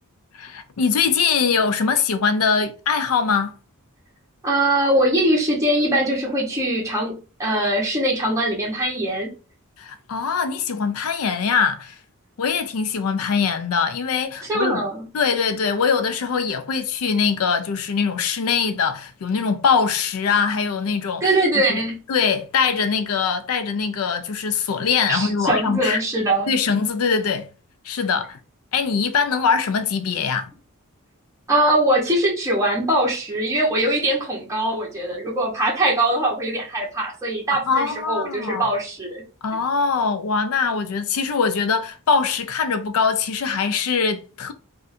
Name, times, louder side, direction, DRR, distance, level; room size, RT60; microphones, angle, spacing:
voice 1, 0.3-3.5 9.8-12.0 12.4-14.9 15.1-21.3 21.7-21.8 22.1-26.0 26.5-27.5 27.8-28.4 28.7-30.5 37.5-38.7 39.4-44.5, left 5 dB, 70° left, 0.4 m, -22 dB
voice 2, 4.4-9.3 14.5-15.0 21.2-21.9 25.1-26.5 31.5-39.2, right 1 dB, 15° right, 0.9 m, -22 dB
2.5 x 2.5 x 4.1 m
head